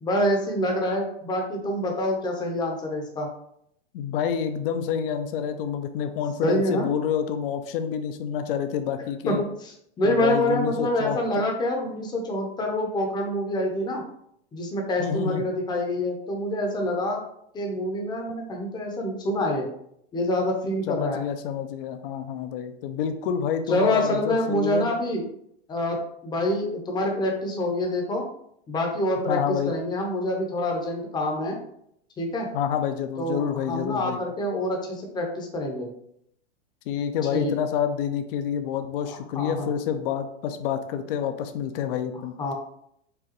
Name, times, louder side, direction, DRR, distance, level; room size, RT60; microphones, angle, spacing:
voice 1, 0.0-3.3 6.4-6.9 9.3-14.0 14.5-17.2 17.5-19.7 20.1-21.2 23.7-25.2 25.7-26.0 26.2-28.2 28.7-31.6 32.2-32.5 33.2-35.9 37.3-37.5 39.1-39.7 42.4-42.5, left 1 dB, 10° left, 1 dB, 0.7 m, -26 dB
voice 2, 3.9-9.4 10.0-11.2 15.0-15.4 20.9-24.9 29.3-29.7 32.5-34.2 36.9-42.3, left 8 dB, 55° left, 7 dB, 0.5 m, -28 dB
4.9 x 2.2 x 3.0 m, 0.71 s
hypercardioid pair, 125°, 35 cm